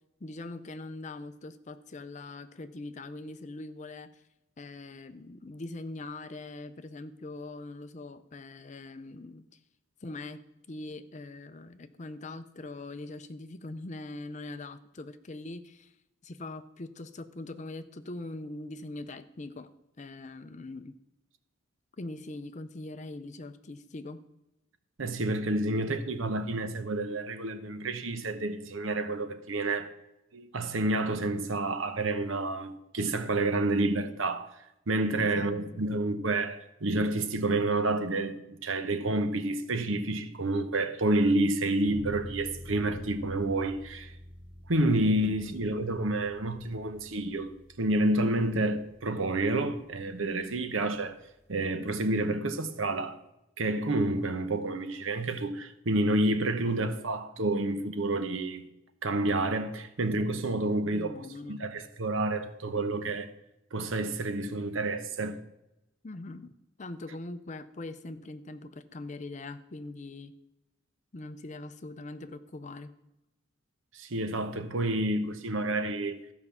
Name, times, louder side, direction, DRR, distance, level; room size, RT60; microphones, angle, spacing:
voice 1, 0.2-4.2 4.6-9.4 10.0-15.9 16.2-21.0 22.0-24.2 35.1-35.8 45.2-45.6 60.9-61.7 66.0-70.3 71.1-72.9, left 2 dB, 35° left, 0.5 m, -42 dB
voice 2, 25.0-29.9 30.3-44.1 44.7-47.5 47.8-51.2 51.5-53.2 53.6-58.6 59.0-61.2 61.5-63.3 63.7-65.4 73.9-76.2, right 2 dB, 70° right, 0.9 m, -29 dB
sound 1, 41.8-51.6, equal, 5° right, 4.4 m, -48 dB
13.5 x 5.4 x 7.0 m
head